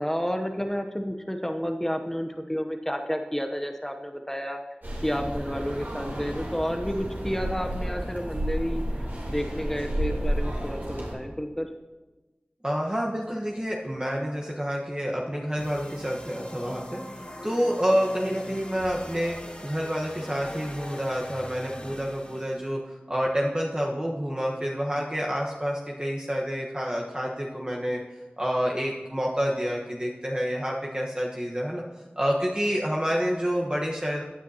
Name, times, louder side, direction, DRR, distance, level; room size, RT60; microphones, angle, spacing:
voice 1, 0.0-4.6 5.0-8.8 9.3-11.7, equal, 10° left, 5 dB, 0.8 m, -30 dB
sound 1, 4.8-11.1, right 1 dB, 65° right, 3.2 m, -31 dB
voice 2, 12.6-17.0 17.4-19.4 19.6-28.0 28.4-31.8 32.2-34.2, equal, 25° right, -3 dB, 1.3 m, -28 dB
sound 2, 15.6-22.7, left 1 dB, 35° left, 1.6 m, -41 dB
15.5 x 9.3 x 2.9 m, 1.2 s
wide cardioid pair, 50°, 4 cm